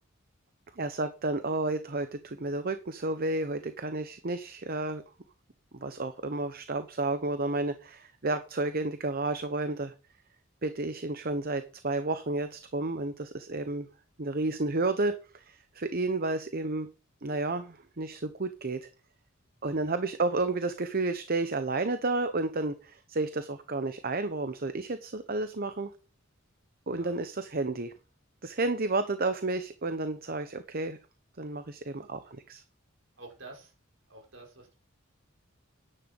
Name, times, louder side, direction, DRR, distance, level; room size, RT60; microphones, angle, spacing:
voice 1, 0.8-5.0 5.8-9.9 10.6-13.9 14.2-16.9 17.2-18.9 19.6-25.9 26.9-27.9 28.4-31.0 31.4-32.6, right 2 dB, 45° right, 10 dB, 0.9 m, -31 dB
voice 2, 33.2-33.7 34.1-34.7, right 2 dB, 70° right, 1 dB, 5.6 m, -49 dB
10.5 x 10.0 x 5.3 m, 0.34 s
head